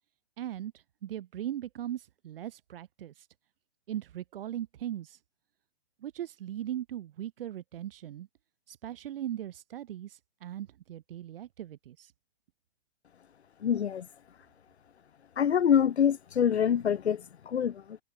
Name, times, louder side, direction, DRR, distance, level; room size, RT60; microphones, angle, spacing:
voice 1, 0.4-3.3 3.9-5.2 6.0-8.3 8.7-12.1, right 11 dB, 55° right, 2.9 m, -39 dB
voice 2, 13.6-14.1 15.4-18.0, left 8 dB, 75° left, 1.7 m, -26 dB
hypercardioid pair, 130°, 33 cm